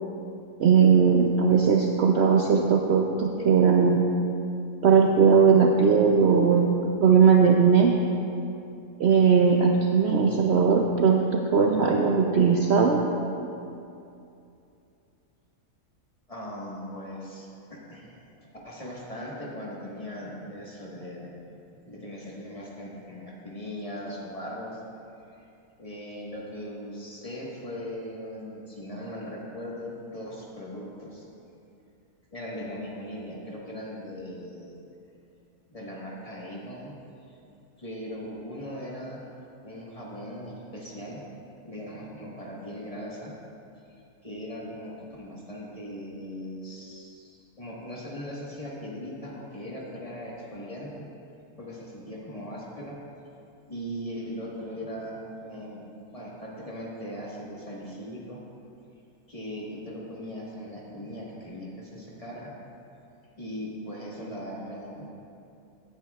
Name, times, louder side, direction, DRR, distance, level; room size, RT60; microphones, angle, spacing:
voice 1, 0.6-4.0 4.8-7.9 9.0-13.0, right 6 dB, 60° right, 1 dB, 0.7 m, -19 dB
voice 2, 16.3-21.3 21.8-24.8 25.3-25.5 25.8-31.2 32.3-34.7 35.7-37.0 37.3-37.4 37.8-39.2 39.6-41.2 41.6-43.3 44.2-51.1 51.6-53.0 53.7-55.8 56.1-58.4 59.3-62.5 63.4-65.0, equal, 25° left, -5 dB, 1.5 m, -39 dB
16.5 x 9.2 x 2.4 m, 2.7 s
omnidirectional pair, 1.5 m